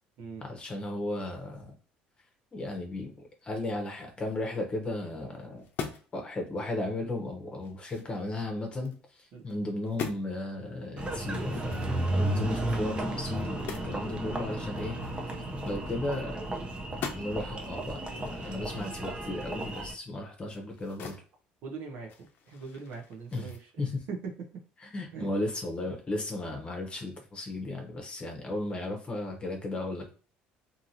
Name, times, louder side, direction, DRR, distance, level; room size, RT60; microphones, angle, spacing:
voice 1, 0.4-1.8 2.5-5.6 6.1-15.0 15.6-16.4 17.1-21.1 23.3-23.5 23.8-24.0 24.8-30.1, left 2 dB, 30° left, 2 dB, 0.8 m, -35 dB
sound 1, 5.6-6.2 6.6-6.8 7.2-9.0 9.4-9.6 9.8-10.2 11.4-14.0 14.3-14.4 14.7-16.5 16.8-17.5 18.0-21.3 21.6-23.6, left 6 dB, 60° left, 0.6 m, -43 dB
Engine, 11.0-19.9, right 1 dB, 25° right, 0.6 m, -33 dB
voice 2, 21.6-24.2 25.1-25.3, right 5 dB, 70° right, 0 dB, 0.7 m, -41 dB
2.8 x 2.6 x 2.7 m, 0.39 s
supercardioid pair, 85°, 4 cm